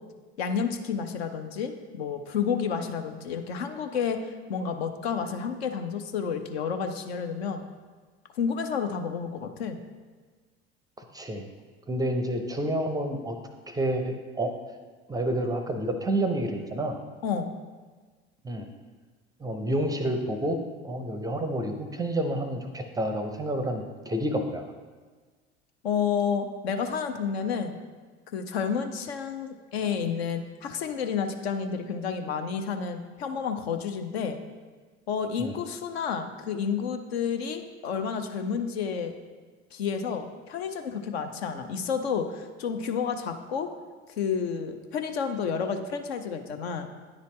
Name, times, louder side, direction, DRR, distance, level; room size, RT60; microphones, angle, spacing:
voice 1, 0.4-1.7 2.0-7.7 8.3-9.8 17.2-17.5 25.8-27.8 28.3-34.4 35.1-39.1 39.7-43.7 44.2-46.9, left 6 dB, 65° left, 7 dB, 0.6 m, -30 dB
voice 2, 11.1-11.5 11.9-13.4 13.7-14.5 15.1-17.0 18.4-18.7 19.4-20.6 20.8-24.7 35.4-35.6, right 1 dB, 10° right, 6 dB, 0.5 m, -29 dB
9.6 x 4.1 x 3.1 m, 1.4 s
figure-of-eight pair, 65°, 34 cm